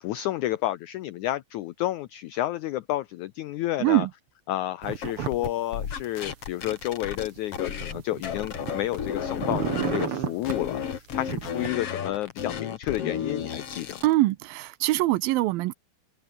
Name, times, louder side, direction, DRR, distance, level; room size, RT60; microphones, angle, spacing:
voice 1, 0.0-4.1 4.5-14.0, left 14 dB, 85° left, 1.7 m, -30 dB
voice 2, 3.8-4.1 14.0-15.7, right 18 dB, 80° right, 2.4 m, -23 dB
sound 1, 4.8-5.5 5.8-6.8 7.4-9.0 9.3-10.6 11.2-11.7, right 8 dB, 45° right, 2.2 m, -32 dB
sound 2, 5.0-8.0 8.2-10.1 10.4-14.1, left 7 dB, 45° left, 2.6 m, -33 dB
omnidirectional pair, 4.3 m